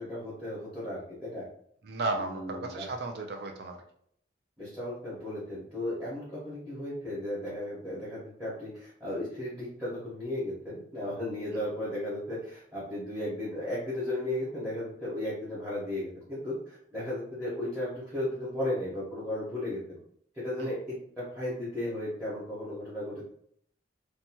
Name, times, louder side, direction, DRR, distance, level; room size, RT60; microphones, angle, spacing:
voice 1, 0.0-1.5 2.2-2.9 4.6-20.0 20.3-23.3, left 1 dB, 5° right, -10 dB, 1.0 m, -35 dB
voice 2, 1.8-3.8 20.6-20.7, right 3 dB, 55° right, 4 dB, 0.4 m, -34 dB
2.8 x 2.2 x 2.8 m, 0.65 s
head